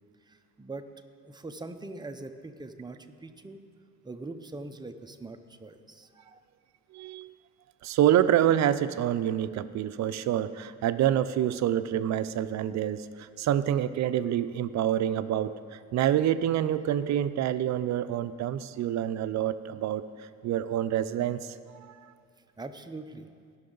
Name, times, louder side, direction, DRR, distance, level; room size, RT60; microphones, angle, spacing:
voice 1, 0.3-0.9 1.2-3.6 4.0-6.4 22.6-23.3, right 2 dB, 15° right, 7 dB, 0.6 m, -42 dB
voice 2, 6.9-7.3 7.8-22.1, right 11 dB, 65° right, 13 dB, 0.5 m, -27 dB
17.0 x 6.0 x 3.9 m, 2.1 s
cardioid pair, 90°, 30 cm